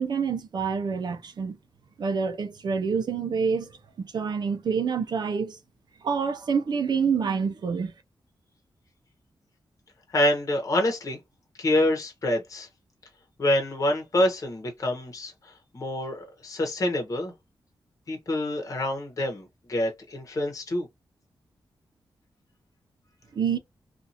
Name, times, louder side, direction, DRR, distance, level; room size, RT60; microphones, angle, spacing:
voice 1, 0.0-1.6 2.0-3.7 4.0-5.6 6.0-7.9 23.3-23.6, right 6 dB, 55° right, 0.6 m, -27 dB
voice 2, 10.1-11.2 11.6-12.7 13.4-17.3 18.1-20.9, left 1 dB, 40° left, 1.0 m, -26 dB
2.8 x 2.5 x 2.5 m
wide cardioid pair, 155°, 9 cm